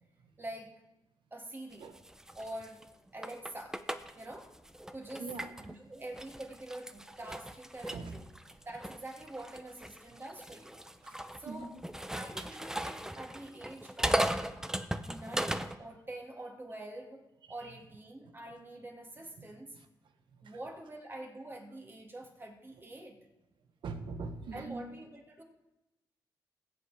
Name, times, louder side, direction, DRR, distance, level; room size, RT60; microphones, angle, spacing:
voice 1, 0.4-0.8 1.3-2.0 2.3-3.9 4.2-4.6 4.9-8.3 8.7-10.9 11.4-11.7 12.1-14.3 15.1-19.8 20.4-23.3 24.5-25.4, right 1 dB, 25° right, 2.1 m, -46 dB
sound 1, 1.7-5.7 6.1-15.8, right 1 dB, 5° right, 0.7 m, -38 dB
voice 2, 5.2-5.5 7.9-8.2 11.0-11.7 12.4-12.5 17.6-17.7 20.4-20.6 23.8-24.8, right 4 dB, 75° right, 1.2 m, -42 dB
18.5 x 8.0 x 3.5 m
cardioid pair, 65°, 8 cm